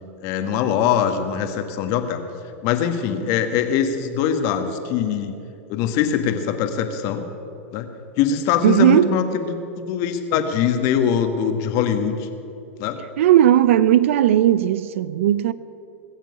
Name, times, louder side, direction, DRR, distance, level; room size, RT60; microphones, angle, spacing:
voice 1, 0.2-2.2 2.6-5.3 5.7-7.2 7.7-7.9 8.2-12.3 12.8-13.0, left 8 dB, 50° left, 1.7 m, -22 dB
voice 2, 8.6-9.1 13.2-15.5, right 11 dB, 70° right, 0.6 m, -16 dB
21.0 x 7.5 x 8.4 m
hypercardioid pair, 110°, 7 cm